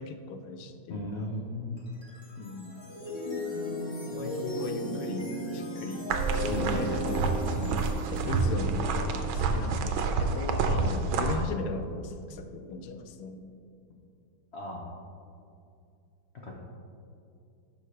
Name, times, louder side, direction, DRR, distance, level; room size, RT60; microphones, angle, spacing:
voice 1, 0.0-1.3 2.4-2.8 4.1-6.1 6.5-7.3 8.1-13.4, left 3 dB, 90° left, 7 dB, 1.6 m, -38 dB
voice 2, 0.9-1.9 6.5-7.0 7.6-7.8 10.8-11.0 14.5-14.8 16.3-16.5, left 2 dB, 65° left, -2 dB, 0.6 m, -36 dB
sound 1, 1.8-11.0, equal, 20° left, 0.8 m, -36 dB
sound 2, 6.1-11.4, right 4 dB, 80° right, 1.4 m, -28 dB
12.0 x 5.5 x 3.2 m, 2.5 s
omnidirectional pair, 2.3 m